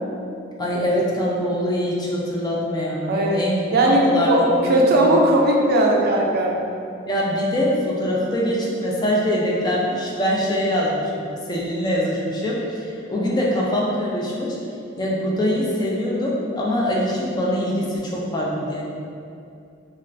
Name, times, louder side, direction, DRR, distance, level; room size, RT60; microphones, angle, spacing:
voice 1, 0.6-3.6 3.9-5.2 7.1-14.6 15.0-18.8, equal, 20° left, -4 dB, 0.4 m, -23 dB
voice 2, 3.1-3.4 3.7-6.6, right 1 dB, 50° right, 0 dB, 0.3 m, -18 dB
2.4 x 2.3 x 3.2 m, 2.5 s
head